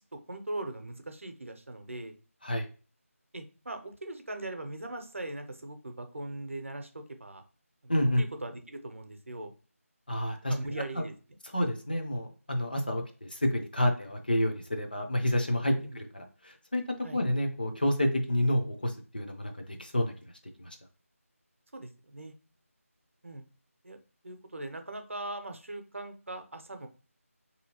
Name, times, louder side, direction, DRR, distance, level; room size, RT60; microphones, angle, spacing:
voice 1, 0.0-2.2 3.3-7.4 7.8-9.5 10.5-11.7 15.7-16.0 17.0-17.2 21.7-22.3 23.2-23.4 23.8-24.0 24.2-26.9, right 2 dB, 60° right, 6 dB, 0.6 m, -40 dB
voice 2, 7.9-8.2 10.1-10.5 10.9-11.0 11.5-16.8 17.1-20.1 20.6-20.8, left 1 dB, 40° left, 3 dB, 0.5 m, -29 dB
3.8 x 2.8 x 2.7 m, 0.36 s
figure-of-eight pair, 180°, 8 cm